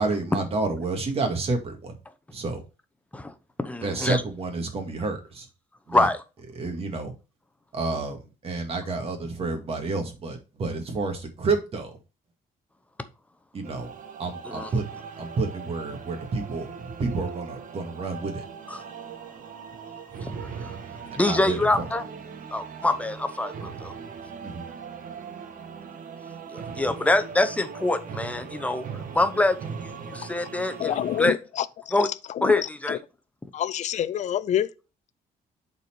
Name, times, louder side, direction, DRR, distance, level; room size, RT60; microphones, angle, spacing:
voice 1, 0.0-1.9 2.3-2.6 3.8-5.5 5.9-6.1 6.6-7.1 7.7-11.9 13.5-13.9 14.2-18.4 20.1-20.5 21.1-21.8 24.4-24.6, right 3 dB, 40° right, 2.1 m, -30 dB
voice 2, 3.1-4.2 5.9-6.2 14.4-14.7 18.7-18.8 20.2-20.7 21.2-22.0 22.5-23.9 26.5-28.9 29.1-31.4 31.9-32.1 32.4-33.0, left 2 dB, 10° left, 0.8 m, -25 dB
sound 1, 13.6-31.2, right 6 dB, 60° right, 1.3 m, -40 dB
voice 3, 30.8-31.7 32.4-32.5 32.9-33.0 33.5-34.7, left 10 dB, 50° left, 0.5 m, -26 dB
7.9 x 4.4 x 4.5 m
cardioid pair, 130°, 15 cm